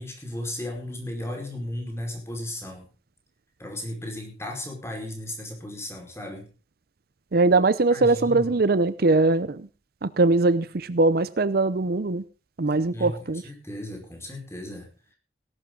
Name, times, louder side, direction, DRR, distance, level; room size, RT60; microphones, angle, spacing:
voice 1, 0.0-2.9 3.6-6.5 7.9-8.6 12.7-13.2 13.4-14.9, left 1 dB, 15° left, 2 dB, 5.0 m, -35 dB
voice 2, 7.3-9.7 10.0-12.2 12.6-13.4, right 3 dB, 55° right, 15 dB, 0.6 m, -21 dB
18.0 x 12.0 x 3.9 m, 0.34 s
head